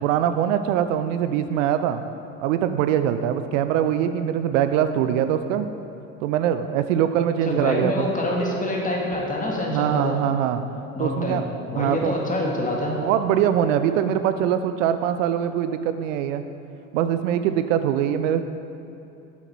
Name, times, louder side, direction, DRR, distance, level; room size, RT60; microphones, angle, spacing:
voice 1, 0.0-2.0 2.4-5.7 6.2-8.1 9.7-10.6 11.0-11.5 11.7-12.1 12.9-16.4 16.9-18.4, right 10 dB, 70° right, 10 dB, 0.5 m, -23 dB
voice 2, 7.5-10.2 10.9-11.4 11.7-13.0, left 1 dB, 20° left, -2 dB, 2.1 m, -26 dB
8.4 x 7.7 x 4.5 m, 2.9 s
hypercardioid pair, 70°, 40 cm